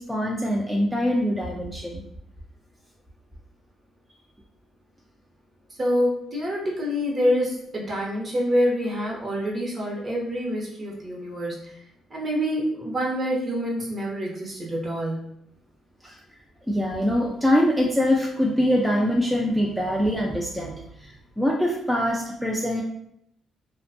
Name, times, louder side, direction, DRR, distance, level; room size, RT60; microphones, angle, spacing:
voice 1, 0.0-2.0 16.0-16.2 16.7-21.1 21.4-22.8, equal, 5° right, -2 dB, 0.4 m, -23 dB
voice 2, 5.8-11.7 12.1-15.3, equal, 35° right, -2 dB, 0.8 m, -26 dB
2.5 x 2.2 x 2.5 m, 0.74 s
cardioid pair, 90°, 0 cm